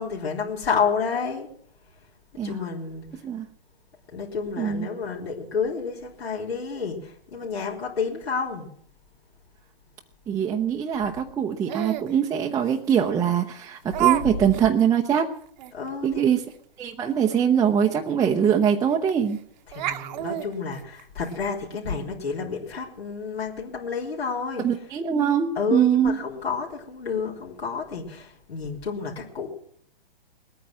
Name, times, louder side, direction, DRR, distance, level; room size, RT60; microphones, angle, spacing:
voice 1, 0.0-1.5 2.4-3.1 4.1-8.7 14.2-14.4 15.7-16.4 19.7-24.7 25.6-29.5, left 5 dB, 85° left, -3 dB, 3.9 m, -30 dB
voice 2, 10.3-15.3 16.0-16.4 16.8-19.4 24.6-26.2, right 8 dB, 10° right, 1 dB, 0.7 m, -23 dB
Laughter, 11.7-12.1 12.9-13.0 13.9-14.2 14.5-14.6 15.1-15.2 15.6-15.7 17.7-17.8 18.1-18.2 19.1-19.4 19.7-21.3, right 15 dB, 45° right, 1.1 m, -27 dB
20.0 x 9.3 x 7.6 m, 0.63 s
hypercardioid pair, 135°, 30 cm